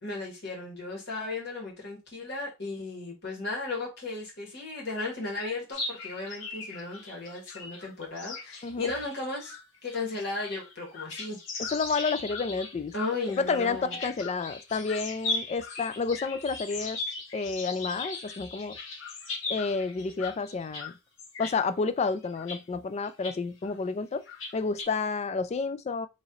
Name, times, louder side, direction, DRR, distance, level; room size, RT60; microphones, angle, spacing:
voice 1, 0.0-9.5 9.8-11.4 12.9-14.0, left 3 dB, 55° left, 1.8 m, -35 dB
sound 1, 5.7-20.9 21.2-21.7 22.2-22.6 23.0-23.4 23.6-23.7 24.3-24.8, left 3 dB, 70° left, 1.2 m, -38 dB
voice 2, 11.7-12.9 13.4-17.0 17.3-18.8 19.5-20.9 21.4-24.2 24.5-26.1, left 4 dB, 35° left, 0.3 m, -30 dB
3.0 x 2.9 x 3.8 m
head